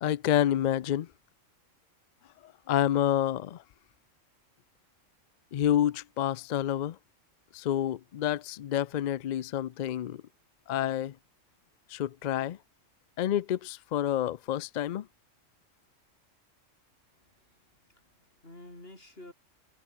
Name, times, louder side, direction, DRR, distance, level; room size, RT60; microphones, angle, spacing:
voice 1, 0.0-1.1 2.7-3.6 5.5-7.0 7.5-10.2 10.7-11.1 11.9-12.6 13.2-15.1, left 11 dB, 75° left, 0.4 m, -28 dB
voice 2, 17.1-17.5 17.9-19.3, left 1 dB, 50° left, 6.6 m, -51 dB
omnidirectional pair, 1.3 m